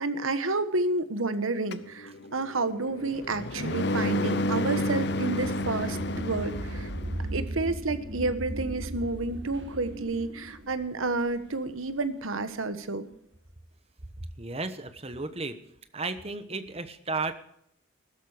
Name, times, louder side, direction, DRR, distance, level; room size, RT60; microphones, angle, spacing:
voice 1, 0.0-6.9 7.3-13.1, right 3 dB, 85° right, 11 dB, 1.3 m, -30 dB
sound 1, 1.7-7.3, left 1 dB, 55° left, 0.8 m, -31 dB
sound 2, 3.2-12.2, right 1 dB, 60° right, 2.0 m, -38 dB
voice 2, 14.2-15.6 15.9-17.3, right 3 dB, 30° right, 10 dB, 1.1 m, -34 dB
15.5 x 13.0 x 5.0 m, 0.73 s
head